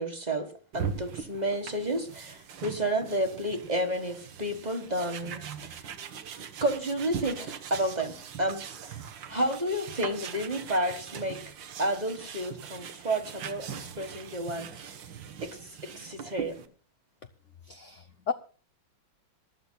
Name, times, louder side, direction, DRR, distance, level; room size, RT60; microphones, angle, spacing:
voice 1, 0.0-5.8 6.6-9.0 9.3-11.4 11.8-15.0 15.4-16.6, right 1 dB, 25° right, 6 dB, 1.5 m, -31 dB
sound 1, 0.7-16.7, right 7 dB, 70° right, 1.8 m, -41 dB
voice 2, 17.7-18.3, left 6 dB, 65° left, 8 dB, 0.7 m, -34 dB
26.5 x 12.5 x 2.3 m, 0.37 s
omnidirectional pair, 2.2 m